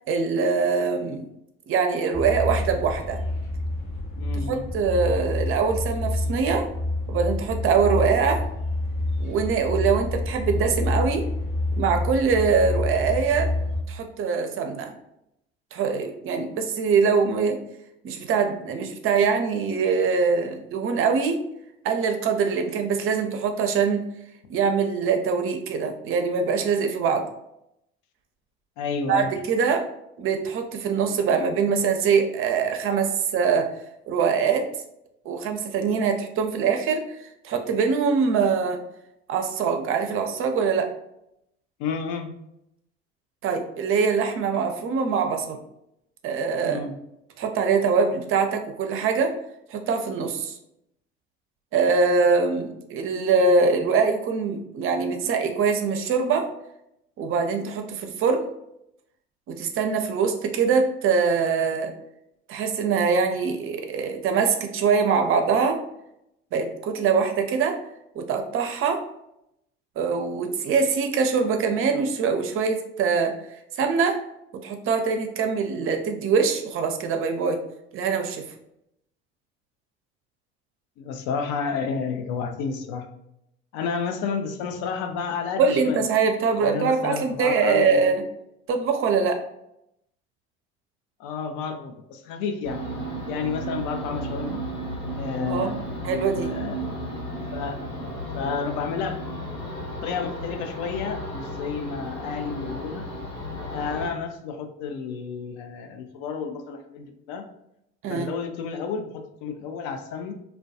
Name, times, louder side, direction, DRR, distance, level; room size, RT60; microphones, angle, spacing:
voice 1, 0.1-1.2 1.7-3.2 4.5-6.6 7.1-8.4 9.2-11.2 11.8-13.5 13.9-14.9 15.7-17.6 18.0-21.4 21.8-24.0 24.5-27.3 29.1-29.9 30.2-33.7 34.1-34.7 35.3-38.8 39.3-40.9 43.4-45.6 46.2-46.8 47.4-49.3 49.7-50.5 51.7-56.5 57.2-58.5 59.5-61.9 62.5-65.8 66.5-67.8 68.2-69.0 70.0-73.3 73.8-74.2 74.6-77.6 77.9-78.4 85.6-88.2 88.7-89.4 95.5-95.7 96.0-96.5 108.0-108.3, right 5 dB, 45° right, 5 dB, 0.5 m, -23 dB
sound 1, 2.1-13.8, left 2 dB, 20° left, 0.8 m, -28 dB
voice 2, 4.2-4.7 28.8-29.3 41.8-42.3 46.6-47.0 81.0-83.1 83.7-86.0 86.6-88.1 91.2-92.8 93.3-94.6 95.2-96.9 97.5-97.8 98.3-99.2 100.0-103.1 103.7-107.5 108.1-110.3, left 5 dB, 65° left, 6 dB, 0.5 m, -31 dB
sound 2, 92.6-104.1, right 1 dB, 90° left, 1.1 m, -34 dB
2.2 x 2.1 x 2.6 m, 0.80 s
hypercardioid pair, 65°, 31 cm